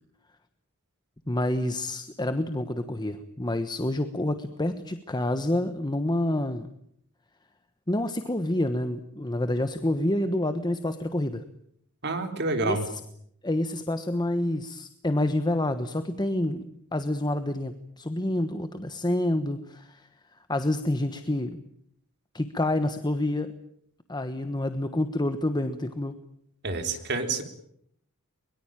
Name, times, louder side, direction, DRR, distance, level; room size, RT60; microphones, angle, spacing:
voice 1, 1.3-6.7 7.9-11.4 12.6-12.8 13.4-20.1 20.5-21.6 22.3-23.5 24.1-26.1, left 1 dB, 20° left, 9 dB, 1.2 m, -28 dB
voice 2, 12.0-12.8 26.6-27.4, right 3 dB, 50° right, 6 dB, 3.7 m, -28 dB
23.0 x 22.5 x 8.9 m, 0.71 s
head